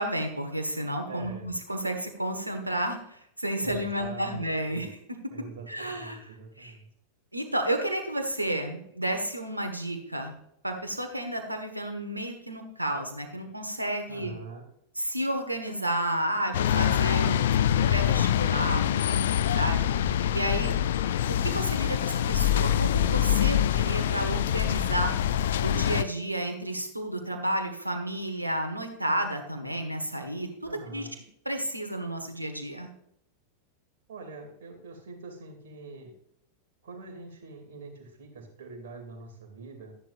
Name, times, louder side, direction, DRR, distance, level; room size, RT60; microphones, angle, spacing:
voice 1, 0.0-5.0 5.7-6.2 6.6-6.7 7.3-10.3 10.6-14.3 14.9-17.4 17.7-19.8 20.3-20.8 21.3-25.1 25.6-31.1 31.4-32.9, right 1 dB, 85° right, 5 dB, 1.3 m, -31 dB
voice 2, 1.1-1.5 3.6-4.9 5.3-6.9 14.1-14.6 19.9-20.3 30.6-31.1 34.1-36.1 36.8-39.9, right 3 dB, 60° right, 2 dB, 2.6 m, -44 dB
sound 1, 16.5-26.0, left 10 dB, 60° left, 0.4 m, -25 dB
12.0 x 10.5 x 2.5 m, 0.72 s
figure-of-eight pair, 90°, 0 cm